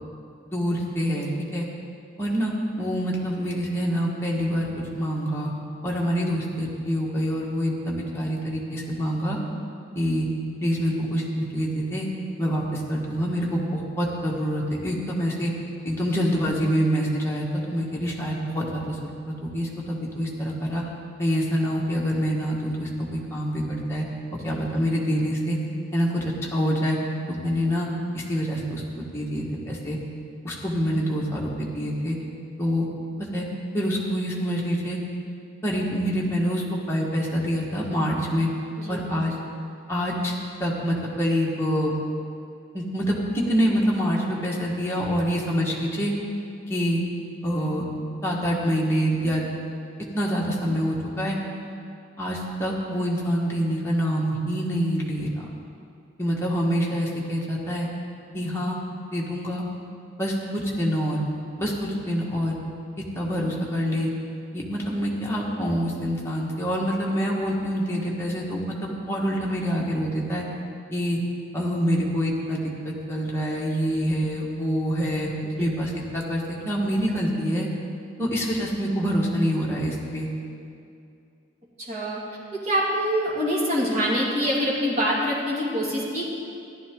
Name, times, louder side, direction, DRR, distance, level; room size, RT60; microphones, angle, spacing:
voice 1, 0.5-1.7 2.2-5.5 5.8-9.4 9.9-10.3 10.6-12.1 12.4-15.5 15.8-19.0 19.2-20.8 21.2-24.0 24.4-25.6 25.9-26.2 26.5-27.0 27.3-27.9 28.1-30.0 30.4-32.2 32.6-32.9 33.3-33.4 33.7-35.0 35.6-38.5 38.9-39.3 39.9-40.3 40.6-41.9 42.7-46.1 46.7-47.0 47.4-47.8 48.2-49.5 50.1-51.4 52.2-55.3 56.2-57.9 58.3-58.8 59.1-59.6 60.2-61.2 61.6-62.6 63.1-64.1 64.5-70.4 70.9-71.2 71.5-75.3 75.6-77.7 78.2-80.3, equal, 15° left, -4 dB, 1.6 m, -26 dB
voice 2, 24.3-24.6 38.8-39.0 81.9-82.2 82.6-86.3, equal, 35° right, -6 dB, 2.3 m, -25 dB
14.0 x 11.5 x 3.8 m, 2.5 s
head